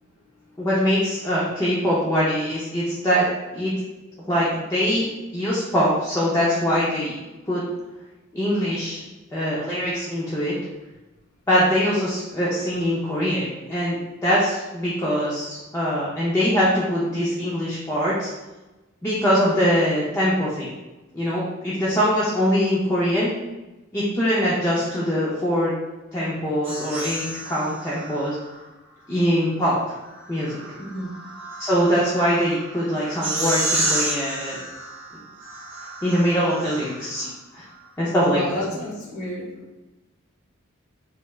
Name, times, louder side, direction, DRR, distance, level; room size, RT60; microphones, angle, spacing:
voice 1, 0.6-3.3 3.5-3.7 4.3-5.0 5.3-7.2 7.5-7.6 8.3-9.0 9.3-10.6 11.5-18.3 19.0-20.7 21.1-23.3 23.9-25.7 26.1-28.4 29.1-29.8 30.3-30.6 31.6-34.6 36.0-37.6 38.0-38.4, equal, 15° left, -7 dB, 0.4 m, -22 dB
sound 1, 26.6-28.6 30.1-37.2, right 2 dB, 30° right, 0.7 m, -31 dB
voice 2, 30.8-31.1 38.3-39.5, left 1 dB, 85° left, -3 dB, 1.0 m, -31 dB
3.3 x 3.1 x 2.2 m, 1.1 s
head